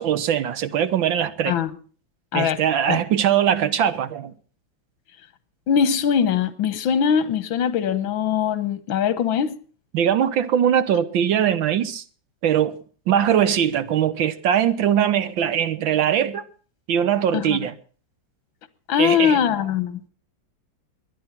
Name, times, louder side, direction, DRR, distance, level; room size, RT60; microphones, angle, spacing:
voice 1, 0.0-1.5 2.3-4.3 9.9-12.0 12.4-12.8 13.1-16.4 16.9-17.7 19.0-19.4, right 9 dB, 75° right, 1.9 m, -21 dB
voice 2, 5.7-9.6 17.3-17.6 18.9-20.0, left 8 dB, 80° left, 1.8 m, -21 dB
22.0 x 10.0 x 5.9 m
omnidirectional pair, 2.1 m